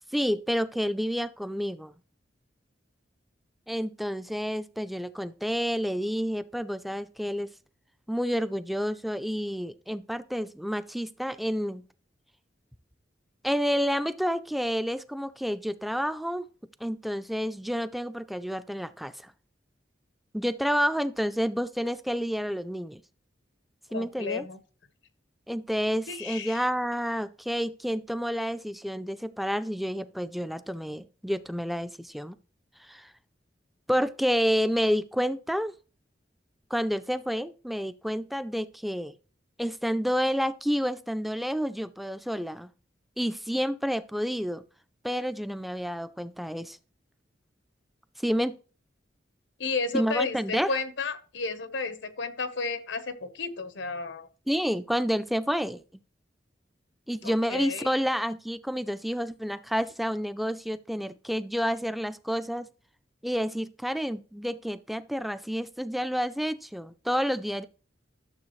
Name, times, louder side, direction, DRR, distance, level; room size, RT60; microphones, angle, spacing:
voice 1, 0.1-1.9 3.7-7.5 8.1-11.8 13.4-16.5 16.8-19.3 20.3-23.0 23.9-24.5 25.5-32.4 32.8-33.1 33.9-35.7 36.7-39.1 39.6-42.7 43.2-44.6 45.0-46.8 48.2-48.6 49.9-50.8 54.5-56.0 57.1-62.7 63.2-67.6, equal, ahead, 0.4 m, -29 dB
voice 2, 23.9-24.6 26.1-26.6 49.6-54.3 57.2-57.9, left 4 dB, 90° left, 1.1 m, -32 dB
12.0 x 7.0 x 3.2 m
head